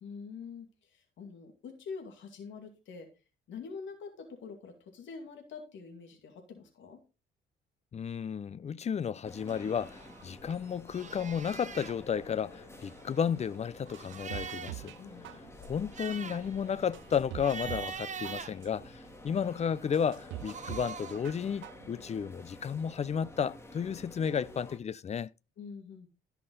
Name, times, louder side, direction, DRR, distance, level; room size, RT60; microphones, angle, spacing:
voice 1, 0.0-3.1 3.5-7.0 15.0-15.4 25.6-26.1, left 5 dB, 70° left, 2.2 m, -45 dB
voice 2, 7.9-14.9 15.6-19.0 19.2-25.3, left 7 dB, 35° left, 0.5 m, -33 dB
sound 1, 9.2-24.8, left 1 dB, 15° left, 1.8 m, -51 dB
sound 2, 9.5-10.6 10.9-12.0 12.7-14.9 15.3-15.4 15.7-19.3 20.2-21.3, right 6 dB, 35° right, 1.0 m, -44 dB
sound 3, 13.9-15.0 15.2-15.9 16.4-16.5 16.9-18.0 18.2-18.9 19.4-19.5 19.9-21.0 21.2-21.9 22.2-22.3, right 15 dB, 75° right, 0.5 m, -43 dB
13.0 x 5.8 x 3.9 m
cardioid pair, 90°, 20 cm